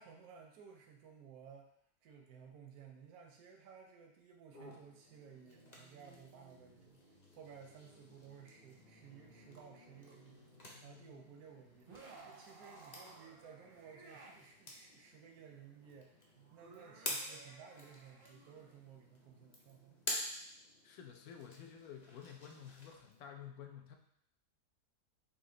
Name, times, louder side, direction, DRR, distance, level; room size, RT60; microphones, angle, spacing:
voice 1, 0.0-1.7 2.0-7.0 7.3-10.4 10.8-20.0, right 7 dB, 80° right, 1 dB, 1.0 m, -57 dB
sound 1, 4.5-23.2, left 1 dB, 35° left, 0.7 m, -50 dB
sound 2, 9.5-9.6 10.1-10.2 11.8-14.4 16.3-19.0, right 3 dB, 55° right, 0.6 m, -57 dB
voice 2, 20.8-24.0, left 8 dB, 75° left, 4 dB, 1.0 m, -51 dB
4.1 x 2.8 x 3.7 m, 0.72 s
omnidirectional pair, 1.6 m